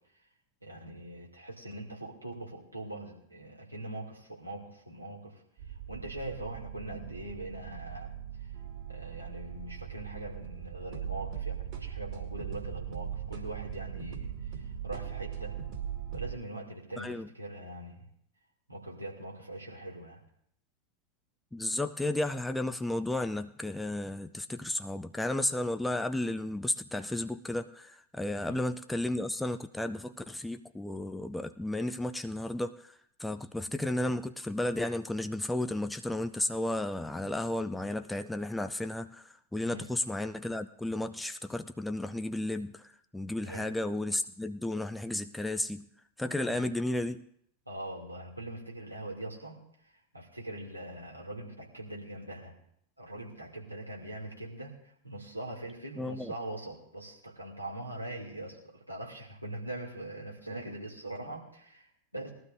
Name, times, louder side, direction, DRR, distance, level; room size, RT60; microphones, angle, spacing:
voice 1, 0.6-5.3 5.7-8.1 8.9-15.6 16.1-18.1 18.7-20.2 28.5-28.6 39.6-39.9 43.5-43.7 46.5-46.7 47.7-49.6 50.1-52.6 53.0-54.7 55.0-62.3, right 1 dB, 85° right, -2 dB, 2.8 m, -42 dB
sound 1, 5.6-16.3, right 9 dB, 45° right, 2.4 m, -40 dB
voice 2, 17.0-17.3 21.5-32.9 33.2-39.2 39.5-42.8 43.1-45.8 46.2-47.2 56.0-56.3, left 1 dB, 5° left, 8 dB, 0.5 m, -33 dB
20.5 x 12.5 x 2.7 m, 0.69 s
figure-of-eight pair, 90°, 0 cm